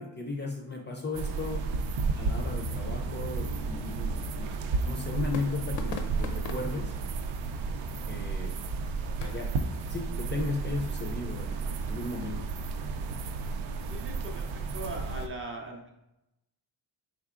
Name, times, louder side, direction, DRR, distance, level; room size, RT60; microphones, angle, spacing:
voice 1, 0.0-1.6 2.1-4.5 4.8-6.9 8.1-8.6 9.3-9.5 9.9-12.4, left 3 dB, 25° left, 0 dB, 0.4 m, -35 dB
sound 1, 1.1-15.3, right 4 dB, 85° right, 0.6 m, -33 dB
sound 2, 3.0-9.5, left 4 dB, 70° left, 0.6 m, -45 dB
voice 2, 13.9-15.9, right 2 dB, 30° right, 0 dB, 0.5 m, -40 dB
4.5 x 3.6 x 2.4 m, 0.88 s
wide cardioid pair, 165°, 46 cm